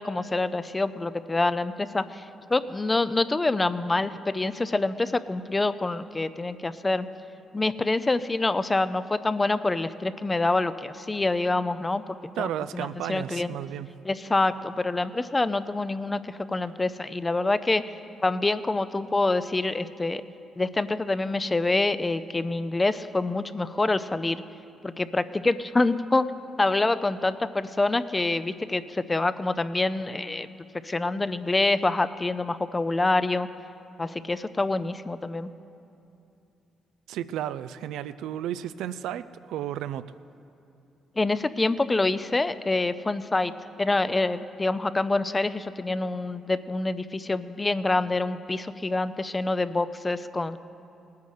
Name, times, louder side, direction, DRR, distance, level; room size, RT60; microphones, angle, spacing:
voice 1, 0.0-2.2 2.5-7.1 7.5-12.0 12.4-13.5 14.1-17.8 18.2-20.2 20.6-24.4 24.8-26.3 26.6-30.5 30.8-33.5 34.0-35.5 41.2-43.5 43.8-50.6, left 2 dB, 20° left, 14 dB, 0.5 m, -26 dB
voice 2, 12.4-13.9 37.1-40.1, right 11 dB, 85° right, 14 dB, 0.4 m, -33 dB
18.0 x 9.5 x 6.5 m, 2.7 s
cardioid pair, 90°, 0 cm